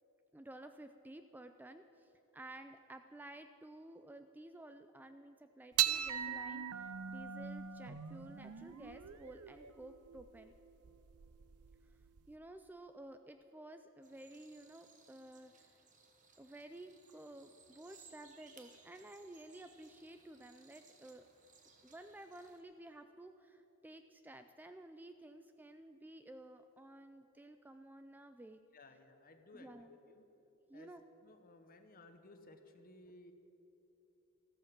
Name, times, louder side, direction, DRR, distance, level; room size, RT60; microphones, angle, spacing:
voice 1, 0.3-10.5 11.9-12.0 12.3-15.8 16.4-21.3 21.8-28.6 29.5-30.0 30.7-31.0, right 1 dB, 10° right, 9 dB, 0.3 m, -53 dB
sound 1, 5.7-12.3, right 10 dB, 90° right, 0.6 m, -40 dB
sound 2, 14.0-22.6, right 5 dB, 35° right, 1.4 m, -64 dB
voice 2, 28.7-30.3 30.7-30.9 31.2-33.3, left 2 dB, 40° left, 7 dB, 1.1 m, -58 dB
14.0 x 13.5 x 6.0 m, 3.0 s
head